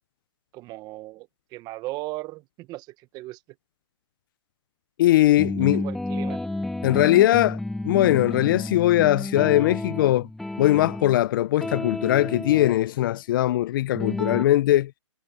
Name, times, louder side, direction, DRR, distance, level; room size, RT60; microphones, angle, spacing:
voice 1, 0.5-3.4 5.6-6.4, right 19 dB, 25° right, 1.3 m, -37 dB
voice 2, 5.0-5.8 6.8-10.3 10.6-14.9, left 14 dB, 45° left, 0.7 m, -20 dB
sound 1, 5.4-11.2 11.6-12.7 13.9-14.4, left 2 dB, ahead, 0.4 m, -31 dB
hypercardioid pair, 140°, 16 cm